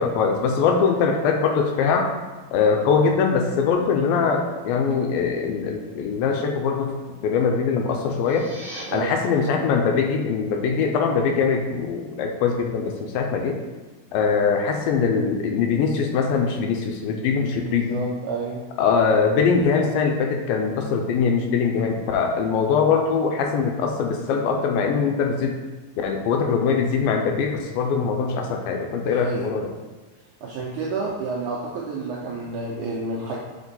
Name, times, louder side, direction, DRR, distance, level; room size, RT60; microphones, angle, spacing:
voice 1, 0.0-2.1 2.5-7.0 7.2-8.5 8.9-13.6 14.1-18.0 18.8-25.6 26.0-29.7, left 5 dB, 80° left, 3 dB, 2.3 m, -22 dB
sound 1, 8.0-8.8, right 1 dB, 30° right, 1.3 m, -39 dB
voice 2, 17.6-18.7 29.0-29.5 30.4-33.4, right 3 dB, 85° right, -4 dB, 1.7 m, -30 dB
6.1 x 4.3 x 3.9 m, 1.2 s
omnidirectional pair, 4.4 m